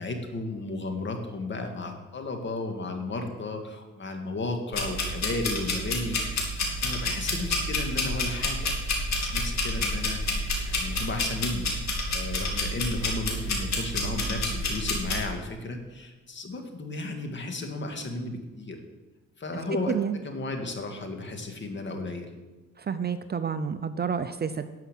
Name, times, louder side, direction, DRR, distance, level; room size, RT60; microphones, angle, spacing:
voice 1, 0.0-18.8 19.4-22.3, left 2 dB, 40° left, 4 dB, 2.0 m, -34 dB
sound 1, 4.7-15.2, left 1 dB, 65° left, 2.6 m, -29 dB
voice 2, 19.9-20.2 22.8-24.7, right 6 dB, 35° right, 10 dB, 0.6 m, -29 dB
11.5 x 5.6 x 7.5 m, 1.2 s
cardioid pair, 90°, 30 cm